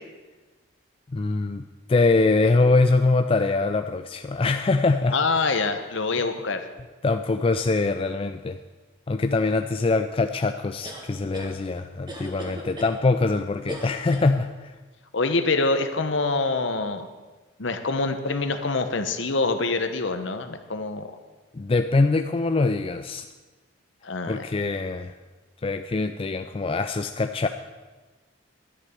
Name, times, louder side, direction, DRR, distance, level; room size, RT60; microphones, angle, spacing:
voice 1, 1.1-5.2 7.0-8.6 9.1-14.7 21.5-23.3 24.3-25.1 25.6-27.5, left 3 dB, 25° left, 7 dB, 0.3 m, -23 dB
voice 2, 5.1-6.7 15.1-17.1 17.6-21.1 24.0-24.4, left 3 dB, 60° left, 8 dB, 1.0 m, -25 dB
sound 1, 10.8-11.5 12.1-12.9 13.7-14.3, right 1 dB, 20° right, 1.8 m, -38 dB
11.0 x 6.8 x 9.0 m, 1.2 s
head